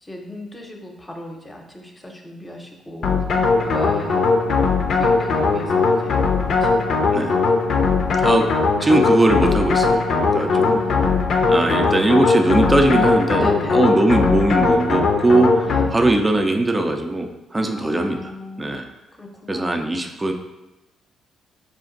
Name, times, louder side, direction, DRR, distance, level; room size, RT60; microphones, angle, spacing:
voice 1, 0.0-4.3 4.9-6.3 6.5-7.3 10.4-11.2 13.3-13.8 15.6-15.9 17.7-18.7 19.2-19.7, left 1 dB, 15° left, 2 dB, 0.8 m, -36 dB
sound 1, 3.0-16.2, left 4 dB, 60° left, 0.5 m, -19 dB
voice 2, 8.8-10.8 11.5-18.9 19.5-20.3, right 2 dB, 20° right, 4 dB, 0.5 m, -20 dB
4.9 x 2.5 x 3.8 m, 1.0 s
cardioid pair, 90°, 0 cm